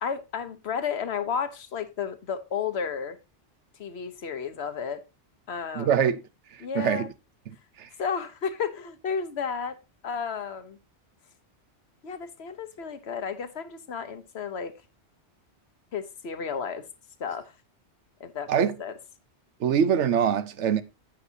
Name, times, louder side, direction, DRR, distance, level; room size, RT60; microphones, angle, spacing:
voice 1, 0.0-3.2 3.8-5.0 5.5-6.0 6.6-7.1 8.0-9.8 10.0-10.8 12.0-14.7 15.9-16.8 17.2-17.5 18.2-19.0, left 6 dB, 70° left, 1.2 m, -32 dB
voice 2, 5.7-6.2 6.7-7.1 7.5-7.9 18.5-18.7 19.6-20.8, right 8 dB, 90° right, 1.1 m, -24 dB
10.0 x 8.5 x 2.7 m
omnidirectional pair, 1.2 m